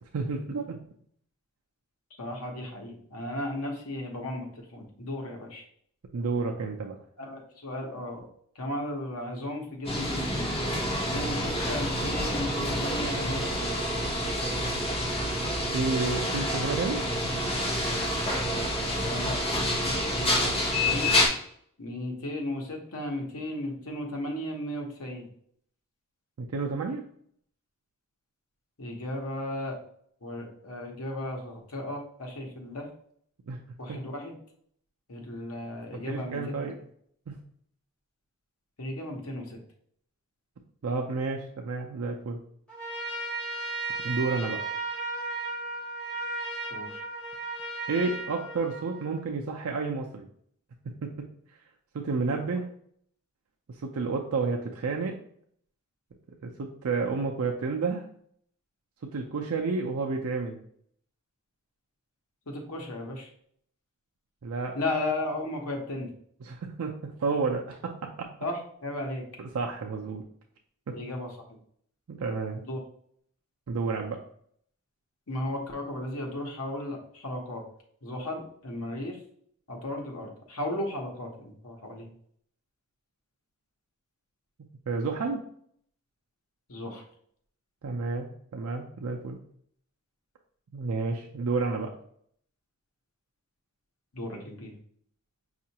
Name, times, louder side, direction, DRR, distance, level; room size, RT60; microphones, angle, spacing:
voice 1, 0.1-0.8 6.1-7.0 15.7-17.0 26.4-27.0 33.5-33.6 33.9-34.0 36.1-36.8 37.3-37.4 40.8-42.4 44.0-44.6 47.9-50.3 51.0-51.1 51.9-52.6 53.8-55.2 56.4-58.1 59.1-60.6 64.4-64.8 66.4-67.9 68.2-68.3 69.4-70.2 70.9-71.0 72.1-72.6 73.7-74.2 84.9-85.4 87.8-89.4 90.7-91.9, right 4 dB, 75° right, 1 dB, 0.4 m, -30 dB
voice 2, 2.2-5.6 7.2-8.2 8.5-10.6 11.0-13.8 19.0-19.4 19.8-21.1 21.8-25.3 28.8-29.8 30.2-32.9 33.8-34.3 35.1-36.7 38.8-39.6 46.7-47.0 52.5-52.6 62.5-63.3 64.7-66.1 68.4-69.2 70.9-71.3 72.6-72.8 75.3-77.6 78.0-79.2 79.7-82.1 86.7-87.0 94.1-94.7, left 1 dB, 75° left, 1 dB, 0.9 m, -35 dB
sound 1, 9.8-21.3, left 1 dB, 25° left, 1.1 m, -28 dB
Trumpet, 42.7-49.2, right 2 dB, 5° left, 1.3 m, -35 dB
5.3 x 2.4 x 2.8 m, 0.64 s
head